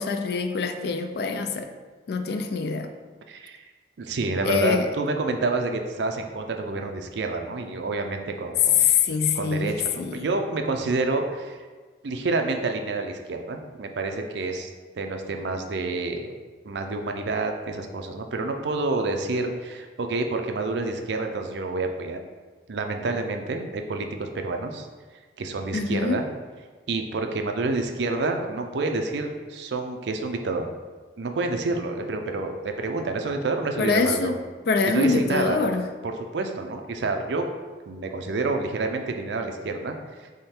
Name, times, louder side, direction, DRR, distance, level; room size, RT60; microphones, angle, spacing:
voice 1, 0.0-1.7 2.1-2.9 4.5-4.9 8.8-10.2 25.7-26.2 33.8-34.4 34.7-35.9, left 5 dB, 60° left, 7 dB, 0.4 m, -24 dB
voice 2, 3.3-3.6 4.0-8.9 9.3-11.6 12.0-14.7 15.0-16.3 16.6-22.2 22.7-24.9 25.4-26.3 26.9-30.7 31.2-34.3 34.9-35.6 36.0-37.4 37.9-40.3, right 3 dB, 75° right, 5 dB, 0.5 m, -28 dB
3.7 x 3.2 x 4.3 m, 1.4 s
head